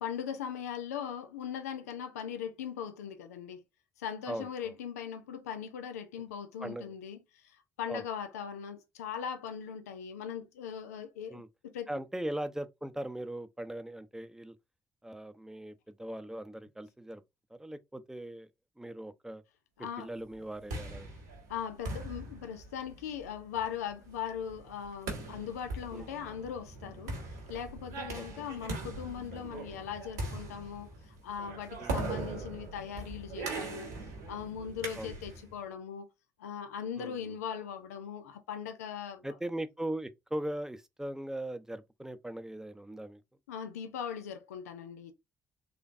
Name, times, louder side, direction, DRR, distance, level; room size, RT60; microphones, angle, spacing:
voice 1, 0.0-3.6 4.0-11.9 19.8-20.1 21.5-33.9 34.3-36.1 36.4-39.3 43.5-45.1, left 8 dB, 80° left, 0.5 m, -40 dB
voice 2, 4.3-4.7 6.6-6.9 7.9-8.1 11.3-11.5 11.9-14.5 15.0-17.2 17.5-18.5 18.8-19.4 20.0-21.1 25.9-26.1 28.2-28.5 31.8-32.2 34.9-35.1 37.0-37.3 39.2-43.2, right 1 dB, 5° right, 0.6 m, -39 dB
sound 1, 20.3-35.5, right 2 dB, 85° right, 1.2 m, -41 dB
3.9 x 3.3 x 2.5 m
figure-of-eight pair, 45°, 8 cm